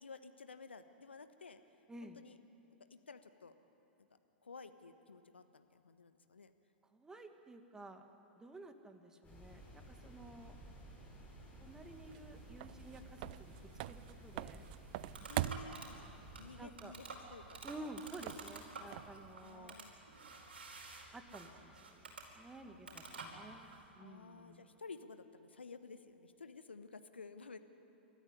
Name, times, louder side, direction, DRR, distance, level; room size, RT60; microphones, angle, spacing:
voice 1, 0.0-1.6 2.0-2.4 2.9-3.5 4.0-4.1 4.4-6.5 15.3-16.0 16.4-17.6 19.3-19.9 22.6-23.1 24.0-27.6, left 4 dB, 80° left, 9 dB, 1.3 m, -53 dB
voice 2, 1.9-2.2 6.9-8.0 8.4-10.5 11.6-13.6 13.9-14.7 16.6-17.0 17.6-19.7 21.1-24.7, right 2 dB, 10° right, 6 dB, 1.9 m, -52 dB
sound 1, 9.2-16.6, right 1 dB, 25° left, 7.4 m, -55 dB
sound 2, 11.7-19.3, right 16 dB, 50° right, 0.5 m, -46 dB
sound 3, 14.4-23.9, right 3 dB, 75° right, 4.8 m, -51 dB
29.0 x 14.0 x 9.9 m, 2.8 s
figure-of-eight pair, 100°, 6 cm